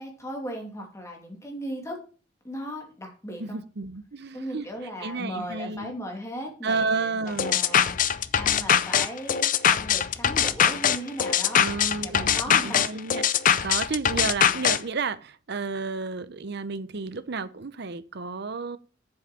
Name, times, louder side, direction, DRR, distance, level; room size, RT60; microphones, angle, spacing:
voice 1, 0.0-2.0 2.4-3.6 4.3-11.7 12.0-12.9, equal, 15° left, 2.8 m, -37 dB
voice 2, 3.4-4.7 5.0-5.9 6.6-7.6 11.6-13.2 13.6-18.8, right 4 dB, 60° right, 0.7 m, -31 dB
sound 1, 7.4-14.8, left 9 dB, 45° left, 0.5 m, -22 dB
7.5 x 7.3 x 6.1 m
head